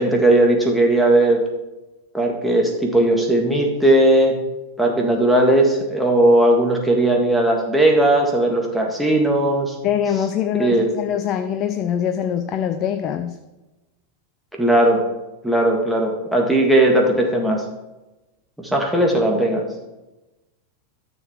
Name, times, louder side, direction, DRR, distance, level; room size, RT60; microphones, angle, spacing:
voice 1, 0.0-1.4 2.1-4.4 4.8-9.8 10.6-10.9 14.5-15.0 15.4-17.6 18.6-19.6, right 1 dB, ahead, -1 dB, 1.8 m, -17 dB
voice 2, 9.8-13.4, left 9 dB, 35° left, 7 dB, 0.6 m, -23 dB
13.0 x 6.6 x 3.6 m, 1.0 s
figure-of-eight pair, 90°, 0 cm